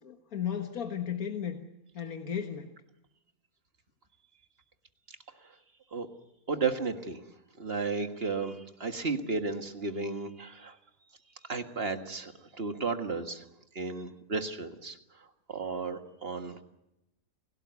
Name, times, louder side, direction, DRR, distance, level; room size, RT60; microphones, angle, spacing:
voice 1, 0.0-1.6 1.9-2.7, left 8 dB, 80° left, 5 dB, 1.9 m, -35 dB
voice 2, 6.5-7.2 7.6-10.7 11.5-13.4 13.8-15.0 15.5-16.6, right 4 dB, 45° right, 7 dB, 1.8 m, -33 dB
29.5 x 17.5 x 8.2 m, 0.91 s
omnidirectional pair, 1.5 m